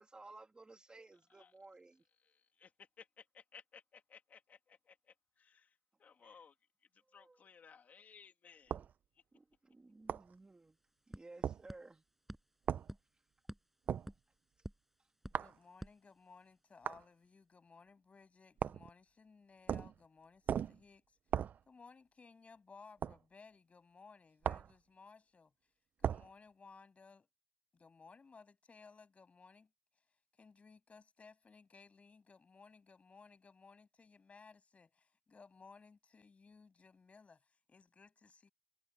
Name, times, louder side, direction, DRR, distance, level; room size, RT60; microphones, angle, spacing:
voice 1, 0.0-2.0 6.2-6.4 7.1-7.4 9.3-10.8 11.1-12.0, right 2 dB, 30° right, 2.5 m, -57 dB
voice 2, 2.2-8.8 9.1-9.2, left 6 dB, 80° left, 2.5 m, -61 dB
sound 1, 8.7-8.9 10.1-10.3 11.4-11.6 12.7-12.9 13.9-14.1 15.3-15.6 16.8-17.0 18.6-18.9 19.7-20.0 20.5-20.8 21.3-21.6 23.0-23.2 24.4-24.7 26.0-26.3, right 8 dB, 90° right, 0.4 m, -37 dB
sound 2, 10.0-10.1 10.3-16.8, right 1 dB, 5° right, 6.0 m, -54 dB
voice 3, 15.3-25.7 26.0-27.3 27.7-38.5, left 4 dB, 50° left, 6.8 m, -60 dB
cardioid pair, 75°, 3 cm